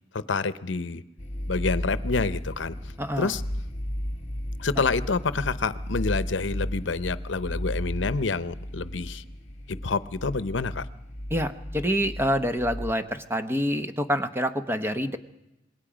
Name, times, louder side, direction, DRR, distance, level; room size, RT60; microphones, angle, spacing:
voice 1, 0.1-1.0 1.5-2.8 3.2-3.4 4.6-9.2 9.8-10.8, left 4 dB, 75° left, 15 dB, 0.8 m, -28 dB
sound 1, 1.2-12.9, equal, 40° left, 2.0 m, -34 dB
voice 2, 3.0-3.4 11.3-15.2, equal, 10° right, 8 dB, 0.9 m, -27 dB
26.5 x 21.0 x 5.1 m, 0.93 s
head